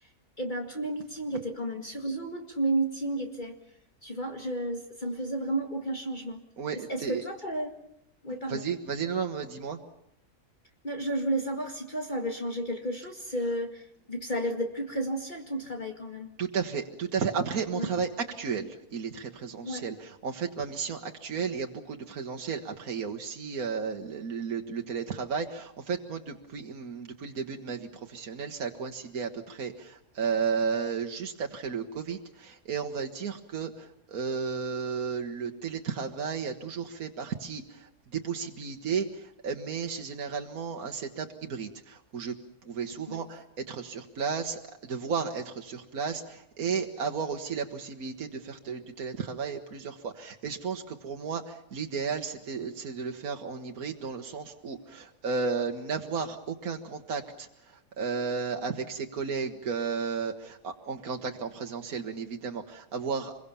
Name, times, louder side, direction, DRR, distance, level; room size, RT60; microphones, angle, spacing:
voice 1, 0.4-3.6 4.0-6.4 6.9-7.7 8.2-8.6 10.8-16.3 17.7-17.9 19.6-19.9 43.1-43.2, right 1 dB, 30° left, 4 dB, 2.2 m, -32 dB
voice 2, 6.6-7.2 8.5-9.8 16.4-42.3 42.7-63.4, right 5 dB, 75° right, 3 dB, 1.8 m, -33 dB
26.5 x 22.5 x 7.0 m, 0.81 s
omnidirectional pair, 1.5 m